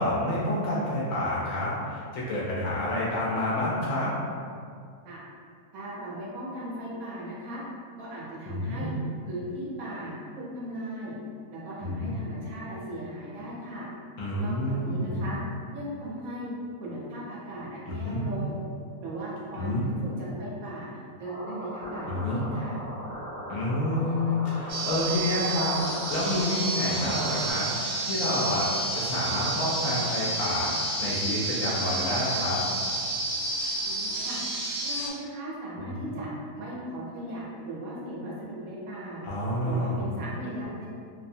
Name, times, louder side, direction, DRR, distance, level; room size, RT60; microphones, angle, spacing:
voice 1, 0.0-4.1 8.5-8.9 11.8-12.1 14.2-15.3 17.9-18.3 19.5-19.9 22.1-22.4 23.5-32.6 35.8-35.9 39.2-40.1, left 1 dB, 70° left, -6 dB, 0.9 m, -29 dB
voice 2, 5.7-7.6 8.0-8.9 9.3-11.2 11.5-13.9 14.4-15.4 15.7-16.5 16.8-18.6 19.0-22.8 33.8-34.4 34.8-36.3 36.6-39.2 39.6-40.9, right 1 dB, 70° right, -6 dB, 0.9 m, -37 dB
sound 1, 21.2-27.5, equal, 30° left, 0.7 m, -39 dB
sound 2, 24.7-35.1, right 2 dB, 85° right, 1.1 m, -30 dB
2.7 x 2.1 x 2.6 m, 2.2 s
omnidirectional pair, 1.7 m